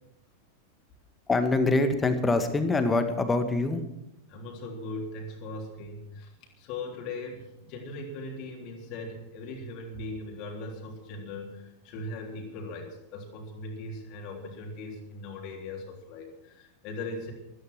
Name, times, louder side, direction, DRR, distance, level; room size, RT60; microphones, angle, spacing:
voice 1, 1.3-3.8, left 2 dB, 15° left, 8 dB, 1.9 m, -24 dB
voice 2, 4.3-6.3 6.6-17.3, left 2 dB, 40° left, 1 dB, 3.5 m, -39 dB
14.5 x 13.5 x 6.3 m, 0.85 s
figure-of-eight pair, 90°, 0 cm